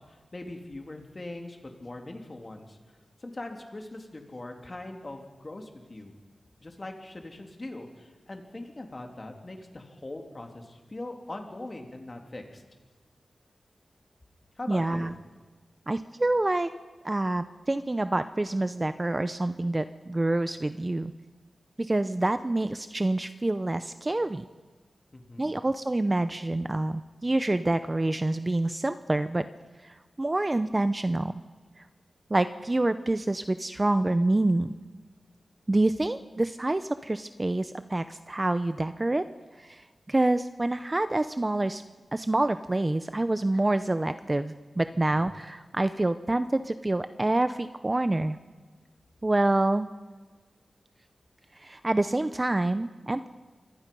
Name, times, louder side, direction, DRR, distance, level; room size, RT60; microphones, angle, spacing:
voice 1, 0.1-2.8 3.2-6.1 6.6-12.6 14.6-15.1 25.1-25.5 45.1-45.3, left 2 dB, 30° left, 3 dB, 3.0 m, -41 dB
voice 2, 14.7-15.2 15.9-16.7 17.0-21.1 21.8-24.4 25.4-29.5 29.8-31.3 32.3-34.7 35.7-39.2 39.6-41.8 42.1-48.4 49.2-49.9 51.6-53.3, right 2 dB, 20° right, 11 dB, 0.6 m, -27 dB
27.0 x 24.5 x 5.4 m, 1.4 s
wide cardioid pair, 110°, 0 cm